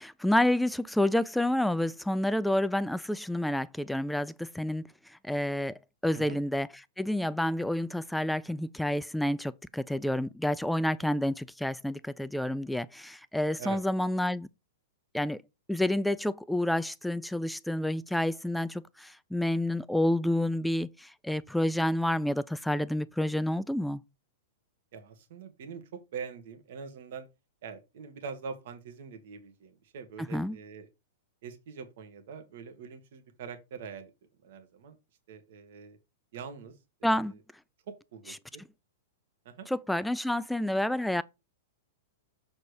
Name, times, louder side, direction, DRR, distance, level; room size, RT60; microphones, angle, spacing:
voice 1, 0.0-4.9 5.2-6.7 7.0-14.5 15.1-15.4 15.7-24.0 30.3-30.6 37.0-37.3 39.7-41.2, left 1 dB, ahead, 0.4 m, -29 dB
voice 2, 24.9-27.3 27.6-30.9 31.4-34.1 34.4-35.0 35.3-36.0 36.3-37.4 37.9-38.6 39.5-39.7, right 6 dB, 65° right, 1.9 m, -44 dB
6.7 x 4.2 x 4.9 m
hypercardioid pair, 130°, 0 cm